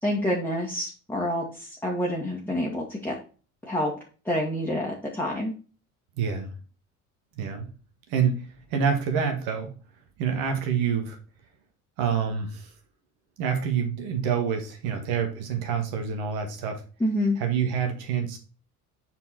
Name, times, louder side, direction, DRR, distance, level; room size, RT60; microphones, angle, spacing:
voice 1, 0.0-3.1 3.7-3.9 4.3-5.5 17.0-17.4, left 1 dB, 5° left, -3 dB, 2.1 m, -27 dB
voice 2, 6.2-6.5 7.4-7.7 8.1-9.7 10.2-11.2 12.0-12.7 13.4-16.8 17.4-18.4, right 7 dB, 55° right, 5 dB, 1.9 m, -27 dB
8.0 x 4.7 x 4.3 m, 0.36 s
figure-of-eight pair, 65°, 45 cm